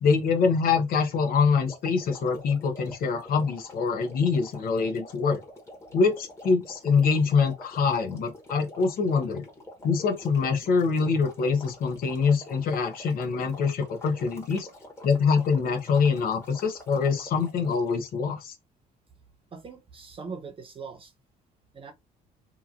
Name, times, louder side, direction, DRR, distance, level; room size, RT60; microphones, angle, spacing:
voice 1, 0.0-5.4 5.9-9.4 9.8-14.7 15.0-18.5, left 5 dB, 60° left, 0.7 m, -24 dB
sound 1, 1.7-18.1, left 1 dB, 15° left, 1.1 m, -46 dB
voice 2, 19.5-21.1 21.7-21.9, right 5 dB, 30° right, 0.8 m, -41 dB
2.9 x 2.4 x 2.4 m
cardioid pair, 110°, 17 cm